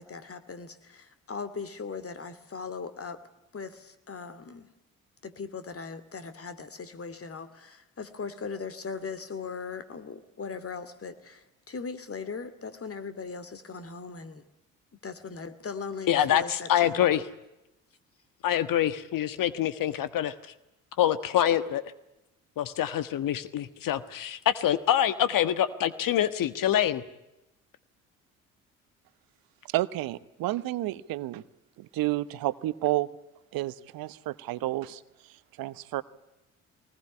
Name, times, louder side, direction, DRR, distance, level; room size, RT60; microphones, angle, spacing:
voice 1, 0.0-3.2 3.5-4.7 5.2-14.4 15.0-17.0, left 5 dB, 35° left, 2.6 m, -39 dB
voice 2, 16.1-17.2 18.4-20.3 21.0-21.8 22.6-27.0, left 11 dB, 55° left, 1.4 m, -25 dB
voice 3, 29.6-31.4 31.8-33.1 33.5-36.0, right 16 dB, 60° right, 1.1 m, -31 dB
21.5 x 20.0 x 9.7 m
hypercardioid pair, 55°, 40 cm